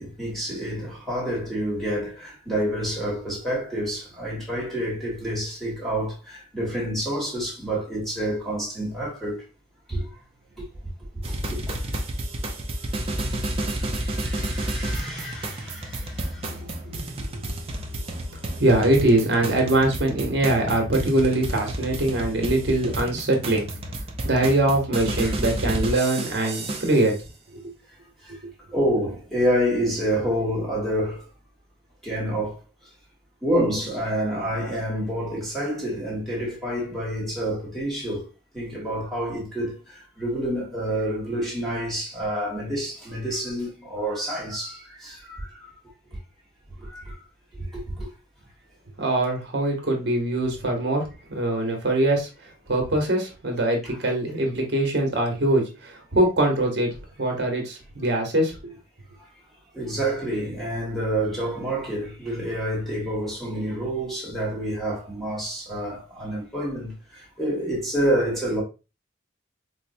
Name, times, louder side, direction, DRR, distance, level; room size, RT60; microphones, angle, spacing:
voice 1, 0.0-9.4 9.9-10.1 11.3-11.8 12.9-16.7 25.2-25.3 28.2-28.4 28.7-31.2 32.0-32.6 33.4-38.3 38.5-45.7 46.8-47.3 47.5-48.1 59.7-68.6, right 1 dB, ahead, 1.2 m, -28 dB
sound 1, 11.2-27.1, right 1 dB, 30° right, 0.5 m, -31 dB
voice 2, 18.6-23.7 24.2-27.1 27.5-27.6 49.0-52.3 52.7-58.8, right 1 dB, 60° right, 1.0 m, -23 dB
4.3 x 2.1 x 2.6 m
head